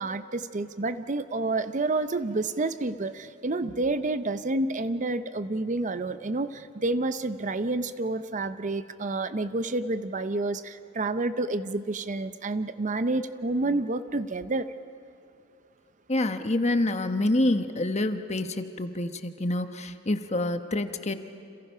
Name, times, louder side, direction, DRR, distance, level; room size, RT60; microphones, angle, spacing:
voice 1, 0.0-14.7, right 2 dB, 35° right, 12 dB, 0.6 m, -29 dB
voice 2, 16.1-21.1, left 1 dB, 30° left, 8 dB, 1.2 m, -27 dB
29.5 x 27.5 x 5.7 m, 2.6 s
head